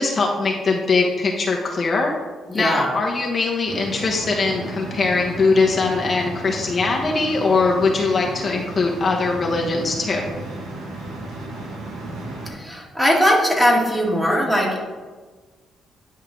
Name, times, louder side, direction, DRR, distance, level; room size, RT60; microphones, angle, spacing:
voice 1, 0.0-2.1 2.5-10.2, left 3 dB, 40° left, -1 dB, 1.1 m, -21 dB
voice 2, 2.5-2.9 12.5-14.8, equal, 5° right, -1 dB, 1.9 m, -19 dB
sound 1, 3.7-12.5, right 2 dB, 85° right, 1.8 m, -34 dB
10.0 x 5.4 x 3.8 m, 1.4 s
cardioid pair, 90°, 0 cm